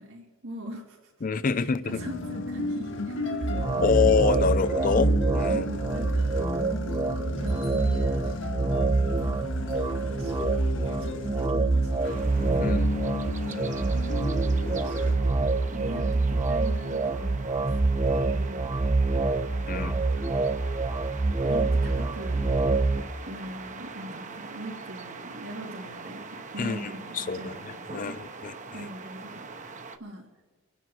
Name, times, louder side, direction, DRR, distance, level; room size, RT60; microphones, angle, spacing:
voice 1, 0.0-1.1 1.5-3.7 5.5-6.3 7.3-8.4 9.2-12.3 14.4-15.1 15.4-17.7 18.2-18.7 19.7-20.4 21.4-22.5 23.2-28.2 28.7-29.6 30.0-30.3, right 1 dB, 85° right, 3.0 m, -41 dB
voice 2, 1.2-2.0 3.8-5.7 12.6-12.9 19.7-19.9 26.6-27.5 27.9-28.9, left 5 dB, 40° left, 0.4 m, -26 dB
sound 1, 1.9-15.1, left 3 dB, 65° left, 1.4 m, -34 dB
sound 2, 3.4-23.0, right 3 dB, 20° right, 0.5 m, -26 dB
sound 3, 12.0-30.0, right 4 dB, 40° right, 1.0 m, -43 dB
28.5 x 9.8 x 4.6 m
head